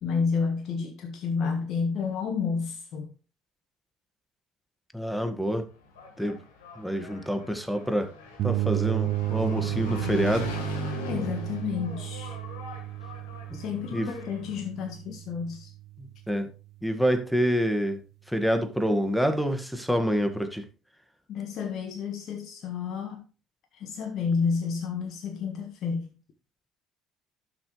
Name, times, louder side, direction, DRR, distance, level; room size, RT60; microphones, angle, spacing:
voice 1, 0.0-3.1 11.1-12.4 13.5-15.7 21.3-23.2 23.7-26.2, left 5 dB, 60° left, 1.5 m, -30 dB
voice 2, 4.9-5.7 6.2-6.4 6.7-8.1 8.4-10.5 13.5-13.6 13.9-14.1 16.0-16.5 16.8-20.7, equal, ahead, 1.7 m, -27 dB
Engine, 5.7-14.6, left 4 dB, 85° left, 1.7 m, -40 dB
sound 1, 8.4-16.1, right 16 dB, 60° right, 0.4 m, -32 dB
12.0 x 6.3 x 3.2 m
hypercardioid pair, 55°, 0 cm